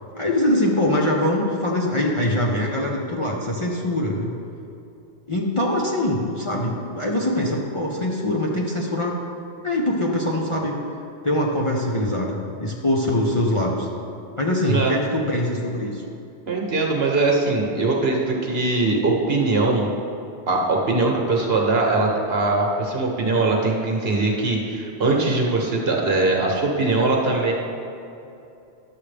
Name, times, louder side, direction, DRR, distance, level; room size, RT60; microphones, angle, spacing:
voice 1, 0.1-4.3 5.3-9.2 9.6-10.8 11.2-13.9 14.4-16.0, left 1 dB, 35° left, -3 dB, 0.6 m, -23 dB
voice 2, 16.5-19.9 20.5-27.5, right 3 dB, 60° right, -1 dB, 1.3 m, -21 dB
11.5 x 7.2 x 3.3 m, 2.8 s
omnidirectional pair, 1.2 m